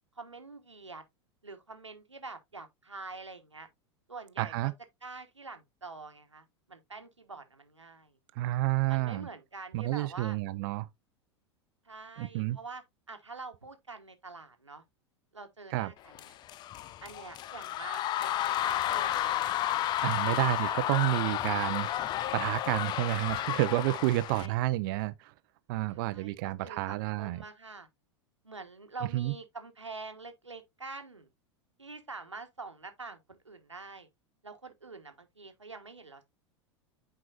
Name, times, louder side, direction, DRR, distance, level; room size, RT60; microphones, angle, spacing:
voice 1, 0.1-1.0 1.4-3.7 4.1-4.7 5.0-8.2 8.9-10.4 11.8-14.8 15.3-16.3 17.0-19.9 20.2-20.3 20.6-21.7 23.1-23.4 24.3-24.6 25.9-27.9 28.4-31.3 31.8-34.1 34.4-36.2, right 3 dB, 85° right, 1.2 m, -46 dB
voice 2, 4.4-4.7 8.3-9.3 9.7-10.9 12.2-12.6 15.7-15.9 20.0-21.9 22.3-25.3 25.7-27.4 29.1-29.3, right 17 dB, 50° right, 0.6 m, -30 dB
sound 1, 16.1-24.5, left 12 dB, 30° left, 0.4 m, -32 dB
9.2 x 4.8 x 2.5 m
figure-of-eight pair, 85°, 15 cm